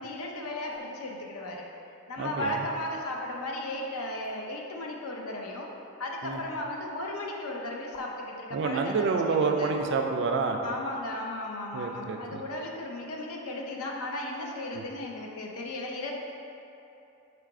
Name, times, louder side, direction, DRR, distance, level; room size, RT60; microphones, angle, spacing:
voice 1, 0.0-1.7 2.1-5.7 6.0-9.1 9.4-9.7 10.6-16.1, left 1 dB, 85° left, 0 dB, 0.6 m, -35 dB
sound 1, 0.7-0.9 2.4-2.6 4.2-4.4 6.3-6.4 7.9-8.1 9.8-9.9, left 1 dB, 40° left, 0.9 m, -44 dB
voice 2, 2.2-2.6 6.2-6.4 8.5-10.6 11.7-12.4 14.7-14.8, right 4 dB, 55° right, 4 dB, 0.3 m, -28 dB
4.6 x 2.5 x 4.6 m, 2.9 s
head